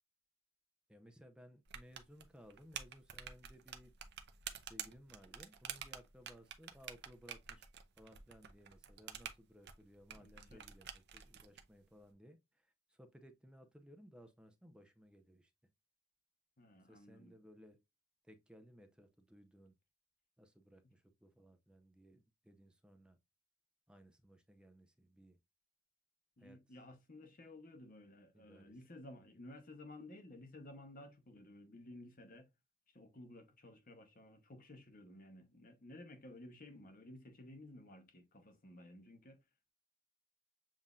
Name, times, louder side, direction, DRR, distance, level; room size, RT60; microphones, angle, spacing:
voice 1, 0.9-3.9 4.6-7.7 8.0-15.5 16.9-17.8 18.3-19.7 20.4-23.2 23.9-25.4 26.4-26.6 28.3-28.7, equal, 5° right, 0.5 m, -61 dB
sound 1, 1.7-11.6, right 9 dB, 50° right, 0.6 m, -49 dB
voice 2, 10.1-10.6 16.6-17.4 26.4-32.5 32.9-39.4, left 1 dB, 40° left, 0.9 m, -55 dB
7.2 x 2.6 x 2.3 m
head